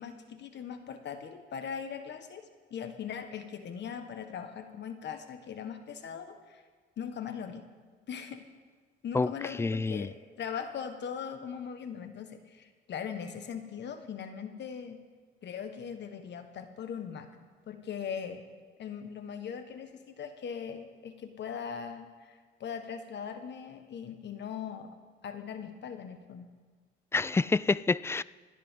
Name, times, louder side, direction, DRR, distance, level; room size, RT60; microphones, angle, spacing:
voice 1, 0.0-6.6 7.0-7.7 8.1-8.5 9.0-15.0 15.4-17.3 17.7-18.4 18.8-24.9 25.2-26.5, left 7 dB, 60° left, 7 dB, 1.5 m, -40 dB
voice 2, 9.6-10.1 27.1-28.2, left 3 dB, 15° left, 19 dB, 0.3 m, -27 dB
26.5 x 10.5 x 3.8 m, 1.5 s
cardioid pair, 90°, 20 cm